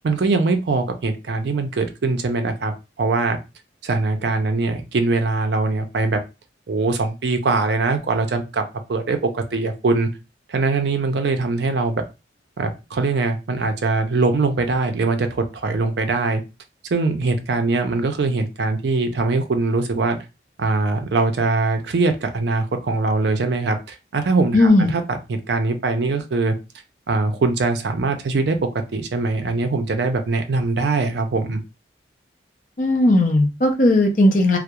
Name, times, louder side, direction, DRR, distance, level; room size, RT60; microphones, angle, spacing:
voice 1, 0.0-3.4 3.8-6.2 6.7-8.6 8.9-10.1 10.5-12.0 12.6-16.4 16.9-20.2 20.6-25.0 25.3-26.5 27.1-28.6 28.9-31.6, right 3 dB, 65° right, 6 dB, 0.4 m, -22 dB
voice 2, 24.5-24.9 32.8-34.6, left 1 dB, 45° left, 3 dB, 0.5 m, -16 dB
2.3 x 2.0 x 2.8 m, 0.28 s
head